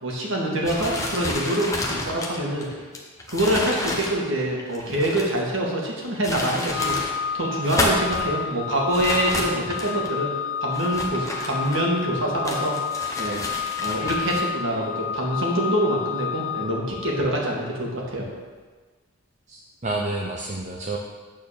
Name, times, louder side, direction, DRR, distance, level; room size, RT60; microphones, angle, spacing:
voice 1, 0.0-2.7 3.3-10.3 10.6-12.8 13.2-13.4 13.8-18.2, right 1 dB, 55° right, -2 dB, 1.8 m, -25 dB
sound 1, 0.6-5.4 6.0-7.1 7.5-8.3 8.9-10.1 10.7-12.0 12.4-14.4, left 1 dB, 15° left, 0.9 m, -30 dB
Organ, 6.7-17.5, left 7 dB, 60° left, 0.4 m, -30 dB
voice 2, 19.5-21.0, right 2 dB, 30° right, -2 dB, 0.6 m, -29 dB
8.8 x 4.2 x 7.0 m, 1.4 s
head